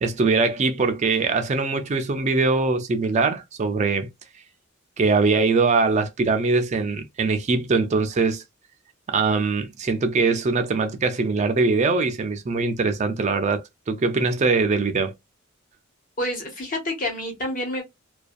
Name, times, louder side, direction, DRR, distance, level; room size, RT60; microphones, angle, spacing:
voice 1, 0.0-4.1 5.0-8.4 9.1-15.1, right 4 dB, 35° right, 0.4 m, -22 dB
voice 2, 16.2-17.8, left 1 dB, 40° left, 1.1 m, -28 dB
2.5 x 2.2 x 2.4 m
head